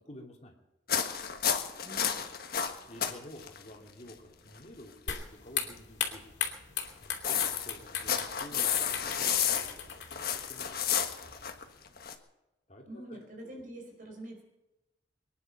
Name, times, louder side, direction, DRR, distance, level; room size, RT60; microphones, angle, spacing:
voice 1, 0.0-0.5 2.9-6.3 7.0-10.8 12.7-13.2, left 1 dB, 40° left, 1 dB, 2.9 m, -50 dB
sound 1, 0.9-3.1 3.4-3.6 4.1-4.2 6.9-12.1, left 8 dB, 55° left, 1.5 m, -31 dB
voice 2, 1.8-2.3 12.9-14.4, right 1 dB, 50° right, 2 dB, 4.8 m, -45 dB
sound 2, 5.1-11.6, left 8 dB, 85° left, 2.8 m, -38 dB
24.0 x 10.5 x 5.6 m, 0.97 s
head